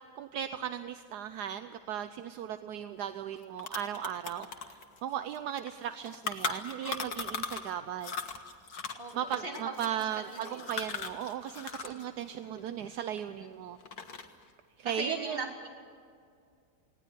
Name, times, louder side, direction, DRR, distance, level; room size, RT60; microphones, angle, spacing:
voice 1, 0.2-8.1 9.1-13.8 14.8-15.4, right 10 dB, 75° right, 10 dB, 1.3 m, -37 dB
sound 1, 3.0-3.1 3.3-7.7 8.0-12.0 12.3-13.5 13.8-14.4, left 5 dB, 65° left, 2.1 m, -38 dB
voice 2, 8.9-10.7 11.8-12.0 14.8-15.7, right 2 dB, 35° right, 0 dB, 3.9 m, -39 dB
19.5 x 18.5 x 10.0 m, 2.3 s
omnidirectional pair, 1.8 m